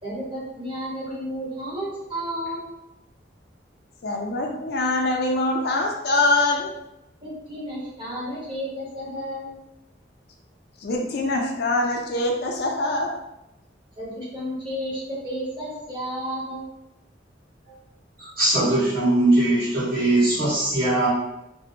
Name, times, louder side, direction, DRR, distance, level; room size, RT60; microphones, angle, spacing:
voice 1, 0.0-2.7 7.2-9.6 14.0-16.7, equal, 25° right, -8 dB, 1.0 m, -32 dB
voice 2, 4.0-6.7 10.8-13.1, left 2 dB, 55° left, 1 dB, 0.4 m, -23 dB
voice 3, 18.2-21.1, right 2 dB, 55° right, -10 dB, 1.3 m, -20 dB
2.5 x 2.0 x 2.6 m, 0.88 s
head